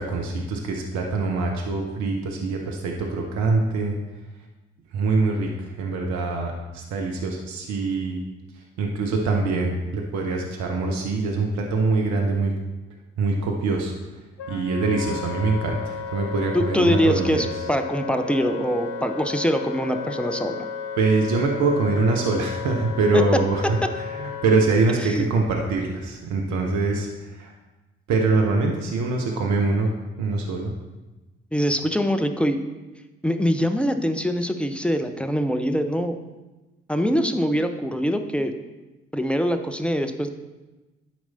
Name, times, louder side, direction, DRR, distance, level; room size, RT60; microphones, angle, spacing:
voice 1, 0.0-4.0 4.9-8.2 8.8-12.5 13.2-13.9 14.5-17.5 21.0-27.5 28.1-29.9 30.2-30.7, right 3 dB, 65° right, 1 dB, 1.0 m, -24 dB
Wind instrument woodwind instrument, 14.4-24.7, left 6 dB, 70° left, 0.6 m, -34 dB
voice 2, 16.5-20.7 23.1-23.2 25.0-25.3 31.5-32.6 33.2-36.2 36.9-38.5 39.1-40.3, equal, 5° left, 7 dB, 0.8 m, -23 dB
11.5 x 4.7 x 4.2 m, 1.1 s
figure-of-eight pair, 40°, 31 cm